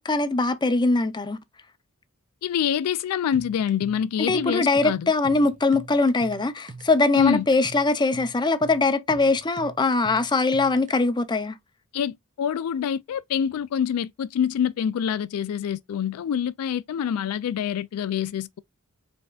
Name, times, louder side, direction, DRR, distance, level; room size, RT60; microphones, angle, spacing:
voice 1, 0.0-1.4 4.3-11.6, left 3 dB, 20° left, 0.5 m, -22 dB
voice 2, 2.4-5.1 7.1-7.4 11.9-18.6, left 8 dB, 75° left, 0.3 m, -26 dB
sound 1, 3.3-10.9, right 3 dB, 35° right, 0.6 m, -43 dB
4.9 x 3.5 x 2.3 m
head